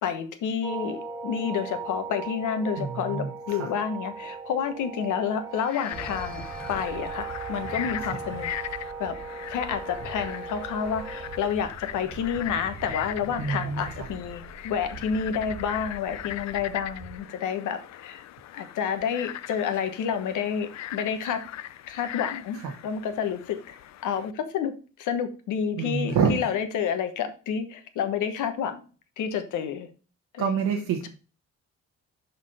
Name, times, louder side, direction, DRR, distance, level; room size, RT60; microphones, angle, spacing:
voice 1, 0.0-8.5 9.0-9.1 9.5-18.2 18.5-21.4 21.9-28.8 29.2-29.9 30.3-30.6, left 7 dB, 85° left, 8 dB, 1.2 m, -29 dB
sound 1, 0.6-11.5, right 4 dB, 10° right, 1.6 m, -38 dB
voice 2, 2.8-3.7 13.4-14.1 22.6-22.7 25.8-26.4 30.4-31.1, right 6 dB, 80° right, 1 dB, 1.2 m, -27 dB
Frog, 5.6-24.3, left 13 dB, 65° left, 0.5 m, -40 dB
sound 2, 5.9-17.1, right 4 dB, 65° right, 1.5 m, -44 dB
5.9 x 5.6 x 4.2 m, 0.37 s
cardioid pair, 90°, 30 cm